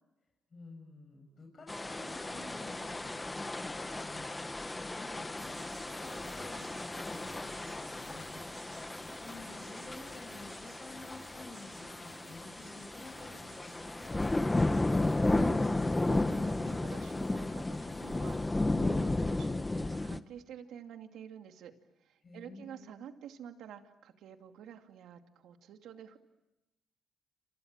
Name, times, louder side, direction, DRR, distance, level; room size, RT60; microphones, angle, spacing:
voice 1, 0.5-14.8 22.2-22.9, left 2 dB, 35° left, 1 dB, 7.2 m, -51 dB
sound 1, 1.7-20.2, left 2 dB, 15° left, 1.1 m, -34 dB
sound 2, 5.4-18.7, right 4 dB, 45° right, 4.8 m, -56 dB
voice 2, 15.2-21.7 22.0-26.2, right 9 dB, 80° right, 6 dB, 2.4 m, -49 dB
29.0 x 27.5 x 7.5 m, 0.95 s
cardioid pair, 90°, 0 cm